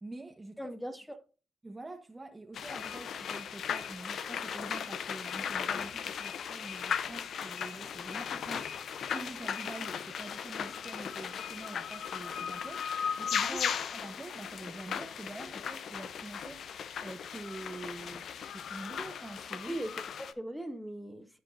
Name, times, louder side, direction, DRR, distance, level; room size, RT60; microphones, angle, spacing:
voice 1, 0.0-0.7 1.6-8.6 9.1-13.6 13.9-16.6 17.0-19.8, right 2 dB, 20° right, 1.1 m, -46 dB
voice 2, 0.6-1.2 13.5-13.7 19.7-21.3, right 1 dB, ahead, 1.7 m, -39 dB
sound 1, 2.5-20.3, left 7 dB, 65° left, 0.7 m, -37 dB
15.5 x 5.2 x 2.6 m
supercardioid pair, 65°, 0 cm